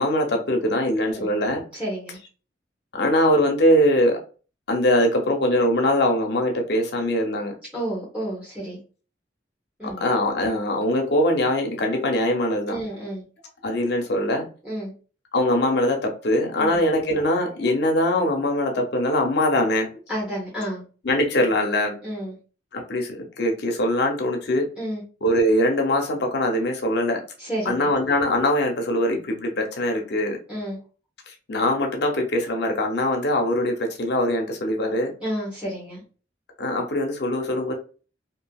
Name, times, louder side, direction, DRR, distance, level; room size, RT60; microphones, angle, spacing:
voice 1, 0.0-1.6 2.9-4.2 4.7-7.5 9.8-12.8 13.6-14.5 15.3-19.9 21.0-22.0 22.7-24.7 25.2-27.2 27.6-30.4 31.3-35.1 36.6-37.7, left 1 dB, 65° left, 2 dB, 0.7 m, -22 dB
voice 2, 1.7-2.2 7.7-8.8 9.8-10.0 12.7-13.2 14.6-14.9 16.6-16.8 20.1-20.8 22.0-22.3 24.8-25.0 27.4-27.9 30.5-30.8 35.2-36.0, right 1 dB, 5° right, -7 dB, 1.0 m, -30 dB
2.6 x 2.6 x 2.2 m, 0.36 s
head